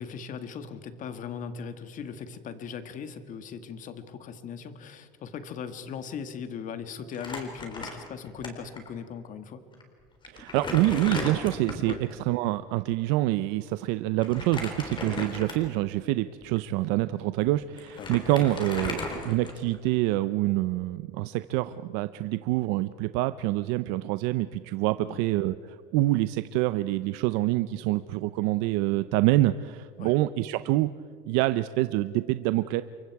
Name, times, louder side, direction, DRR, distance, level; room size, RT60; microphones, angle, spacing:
voice 1, 0.0-9.6 11.9-12.0 18.0-18.1 25.0-25.2 30.0-30.1, left 6 dB, 45° left, 10 dB, 1.8 m, -39 dB
Crumpling crinkling, 7.1-8.5 8.8-8.9 9.7-9.8 10.2-12.1 14.2-15.8 16.4-16.6 17.5-17.6 17.8-19.9, left 2 dB, 25° left, 3.7 m, -35 dB
voice 2, 10.3-30.9 31.3-32.8, right 16 dB, 85° right, 13 dB, 0.6 m, -26 dB
28.5 x 23.5 x 4.8 m, 2.3 s
cardioid pair, 145°, 19 cm